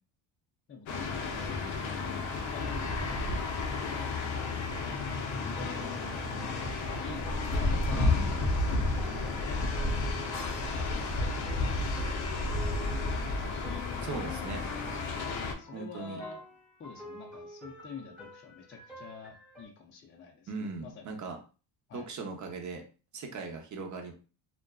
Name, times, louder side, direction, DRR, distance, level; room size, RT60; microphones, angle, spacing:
voice 1, 0.7-1.8 2.5-3.2 3.6-4.1 5.3-7.2 7.6-8.1 9.1-10.2 10.7-14.1 15.2-16.4 16.8-21.1 21.9-22.1, left 5 dB, 25° left, 1 dB, 0.5 m, -48 dB
sound 1, 0.9-15.5, left 3 dB, 75° left, 0.7 m, -32 dB
sound 2, 1.9-2.5 4.7-19.7, left 2 dB, ahead, 0.9 m, -47 dB
voice 2, 7.9-8.4 14.0-14.6 15.7-16.2 20.5-21.4 21.9-22.8 23.1-24.1, right 4 dB, 40° right, 4 dB, 0.7 m, -39 dB
2.5 x 2.2 x 2.2 m, 0.35 s
cardioid pair, 100°, 46 cm